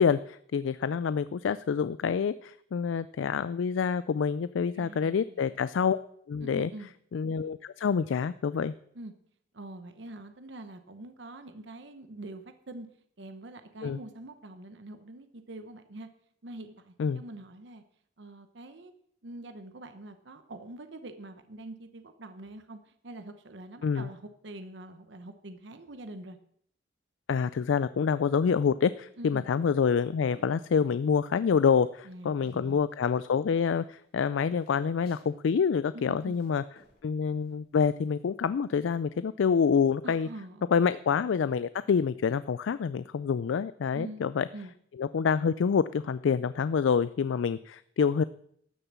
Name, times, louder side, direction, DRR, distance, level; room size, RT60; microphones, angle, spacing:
voice 1, 0.0-6.0 6.3-6.7 7.1-8.7 13.8-14.0 17.0-17.2 23.8-24.1 27.3-36.6 37.0-40.3 40.7-44.5 45.0-48.2, left 6 dB, 75° left, 15 dB, 0.4 m, -27 dB
voice 2, 4.7-5.6 6.4-6.9 8.9-9.1 9.5-12.9 13.2-16.1 16.4-17.8 18.2-18.9 19.2-26.4 29.2-29.5 32.0-32.8 35.9-36.4 40.0-40.9 43.9-44.7, right 2 dB, 65° right, 8 dB, 0.9 m, -45 dB
sound 1, 29.6-31.5 31.8-32.6 32.9-39.0, left 1 dB, 50° left, 2.8 m, -61 dB
13.0 x 6.8 x 7.4 m, 0.68 s
head